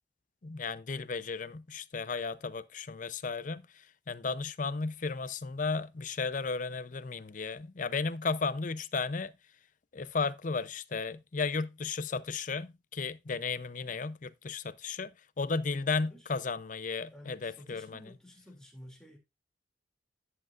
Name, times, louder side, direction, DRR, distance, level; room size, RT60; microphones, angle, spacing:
voice 1, 0.4-9.3 9.9-18.1, left 4 dB, 45° left, 0.5 m, -34 dB
voice 2, 17.1-19.2, equal, 5° left, 2.6 m, -52 dB
11.0 x 7.8 x 2.4 m
head